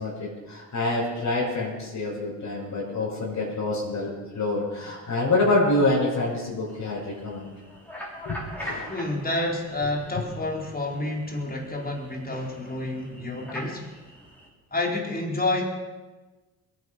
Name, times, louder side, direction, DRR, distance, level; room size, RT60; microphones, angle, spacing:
voice 1, 0.0-7.5 8.2-9.0, left 2 dB, 45° left, -9 dB, 6.5 m, -26 dB
sound 1, 6.7-14.5, equal, 5° left, 5.9 m, -42 dB
voice 2, 8.9-13.9 14.7-15.6, left 2 dB, 20° left, 0 dB, 4.4 m, -29 dB
22.0 x 9.5 x 5.8 m, 1.2 s
hypercardioid pair, 55°, 41 cm